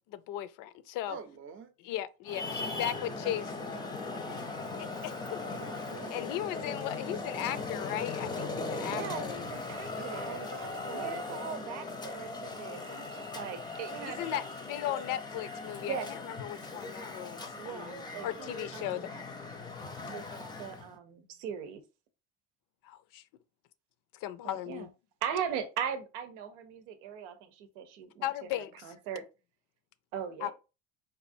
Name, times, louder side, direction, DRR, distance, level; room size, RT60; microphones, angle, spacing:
voice 1, 0.1-1.2 1.8-3.5 4.8-5.4 6.1-9.4 14.0-16.0 16.4-18.0 18.2-19.1 22.8-23.2 24.2-24.9 28.2-28.8 30.4-30.5, left 13 dB, 65° left, 0.5 m, -37 dB
voice 2, 1.1-1.7 5.5-6.2 10.0-11.2, right 6 dB, 35° right, 0.6 m, -45 dB
Traffic noise roadway noise, 2.2-20.9, left 3 dB, 10° left, 0.6 m, -39 dB
voice 3, 8.9-10.4 10.9-14.4 15.9-16.1 17.5-19.1 20.0-20.2 20.6-21.8 24.4-24.9 25.2-29.2 30.1-30.5, right 7 dB, 85° right, 0.8 m, -39 dB
4.2 x 2.5 x 2.6 m
supercardioid pair, 100°, 36 cm